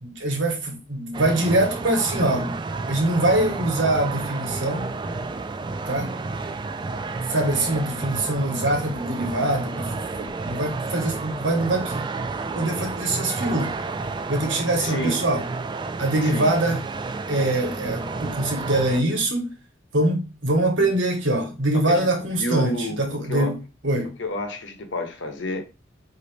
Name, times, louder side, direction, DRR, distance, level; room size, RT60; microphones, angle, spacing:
voice 1, 0.0-2.6 2.9-4.9 5.9-6.1 7.3-12.1 12.5-13.8 14.3-15.4 16.0-16.8 17.3-19.5 19.9-23.6 23.8-24.1, right 1 dB, 85° right, 1.2 m, -23 dB
sound 1, 1.1-19.0, right 3 dB, 25° right, 0.3 m, -31 dB
voice 2, 14.8-15.2 16.2-16.5 21.9-23.0 23.3-23.5 24.2-25.6, left 1 dB, 75° left, 1.0 m, -29 dB
5.1 x 2.7 x 3.3 m
head